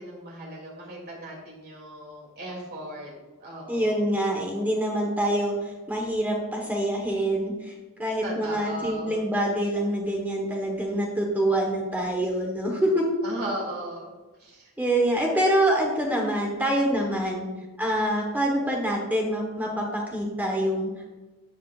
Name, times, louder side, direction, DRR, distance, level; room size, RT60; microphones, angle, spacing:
voice 1, 0.0-3.1 3.4-4.1 8.2-9.2 13.2-14.1 14.4-14.7 16.9-17.5, right 1 dB, 45° right, -2 dB, 2.6 m, -37 dB
voice 2, 3.7-7.7 8.0-13.1 14.8-17.5 17.8-21.1, right 1 dB, 10° right, -1 dB, 1.2 m, -25 dB
12.5 x 7.5 x 2.4 m, 1.2 s
head